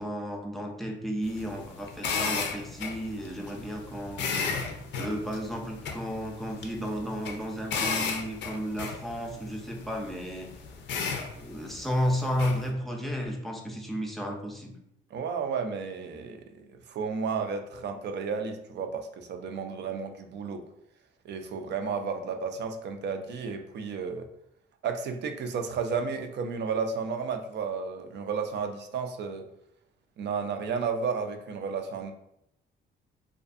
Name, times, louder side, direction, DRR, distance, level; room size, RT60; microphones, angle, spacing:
voice 1, 0.0-4.3 5.0-10.5 11.4-14.7, equal, ahead, 0 dB, 0.5 m, -33 dB
sound 1, 1.2-12.7, left 5 dB, 65° left, 0.5 m, -35 dB
voice 2, 15.1-20.6 21.3-24.3 24.8-29.5 30.2-32.1, right 5 dB, 60° right, 6 dB, 0.4 m, -32 dB
2.5 x 2.4 x 2.4 m, 0.77 s
cardioid pair, 90°, 20 cm